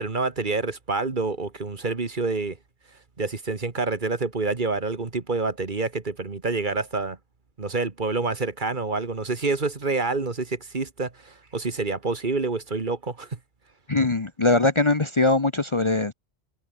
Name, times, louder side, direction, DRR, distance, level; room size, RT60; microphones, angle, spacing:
voice 1, 0.0-2.6 3.2-7.2 7.6-13.4, right 3 dB, 45° right, 1.8 m, -27 dB
voice 2, 13.9-16.1, left 2 dB, 30° left, 1.0 m, -21 dB
omnidirectional pair, 1.2 m